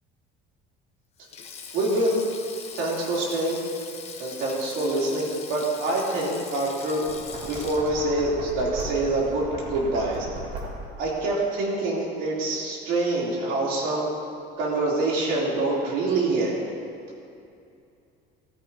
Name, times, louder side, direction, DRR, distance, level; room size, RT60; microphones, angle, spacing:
Sink (filling or washing), 1.2-9.6 9.9-10.2 11.3-11.6, left 6 dB, 35° left, 1.0 m, -42 dB
voice 1, 1.7-2.2 2.7-3.6 4.2-7.1 7.4-10.3 11.0-14.1 14.6-16.6, right 2 dB, 75° right, -5 dB, 3.7 m, -25 dB
Knock, 7.0-11.1, right 1 dB, 35° right, 2.1 m, -37 dB
15.5 x 14.5 x 3.0 m, 2.5 s
cardioid pair, 175°, 20 cm